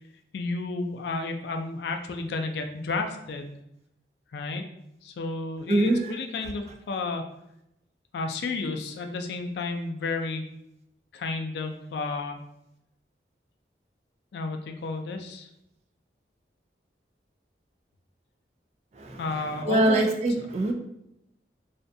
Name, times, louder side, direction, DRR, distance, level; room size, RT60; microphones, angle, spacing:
voice 1, 0.3-3.5 4.3-4.6 5.0-7.2 8.1-10.5 11.1-12.4 14.3-15.5 19.2-20.1 20.4-20.5, left 3 dB, 70° left, 5 dB, 0.3 m, -32 dB
voice 2, 19.7-20.7, right 1 dB, 35° right, 2 dB, 0.3 m, -23 dB
2.5 x 2.2 x 2.6 m, 0.81 s
head